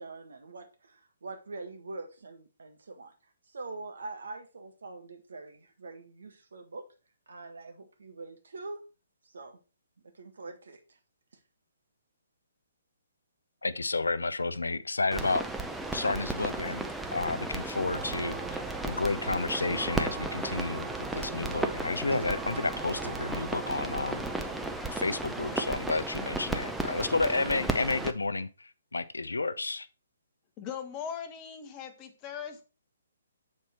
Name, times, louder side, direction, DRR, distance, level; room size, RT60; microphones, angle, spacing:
voice 1, 0.0-3.1 3.5-6.9 7.3-8.8 9.3-9.6 10.1-10.8, right 3 dB, 65° right, 1.6 m, -44 dB
voice 2, 13.6-15.4 15.9-16.8 17.1-24.2 24.9-29.9, left 3 dB, 75° left, 0.5 m, -31 dB
sound 1, 15.1-28.1, right 2 dB, 5° right, 0.6 m, -35 dB
sound 2, 17.7-25.7, right 5 dB, 35° right, 2.8 m, -42 dB
voice 3, 30.6-32.6, left 8 dB, 25° left, 1.1 m, -39 dB
7.5 x 4.4 x 4.4 m
figure-of-eight pair, 130°, 0 cm